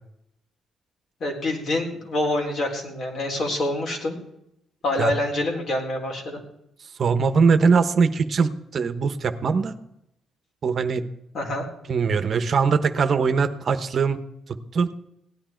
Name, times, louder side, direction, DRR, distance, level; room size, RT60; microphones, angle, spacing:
voice 1, 1.2-4.2 4.8-6.4 11.3-11.7, left 1 dB, 55° left, 1 dB, 4.0 m, -26 dB
voice 2, 7.0-9.8 10.6-11.0 11.9-14.2 14.7-14.9, right 5 dB, 50° right, 10 dB, 1.0 m, -21 dB
17.0 x 10.0 x 4.5 m, 0.80 s
cardioid pair, 90°, 0 cm